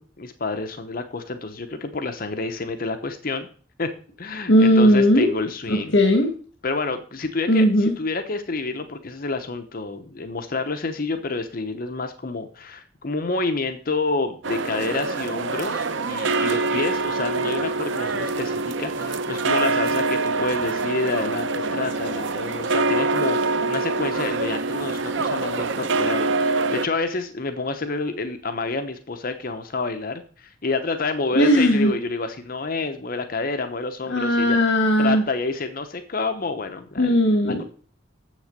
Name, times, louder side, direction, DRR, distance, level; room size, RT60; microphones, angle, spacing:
voice 1, 0.0-3.5 3.8-3.9 4.2-6.0 6.6-34.6 35.0-37.6, left 3 dB, 50° left, 8 dB, 0.8 m, -29 dB
voice 2, 4.5-5.3 5.7-6.3 7.5-7.9 31.3-31.9 34.1-35.2 37.0-37.6, equal, 70° left, 2 dB, 1.4 m, -17 dB
sound 1, 14.4-26.9, right 3 dB, 75° right, 0.7 m, -25 dB
7.5 x 6.4 x 6.5 m, 0.42 s
head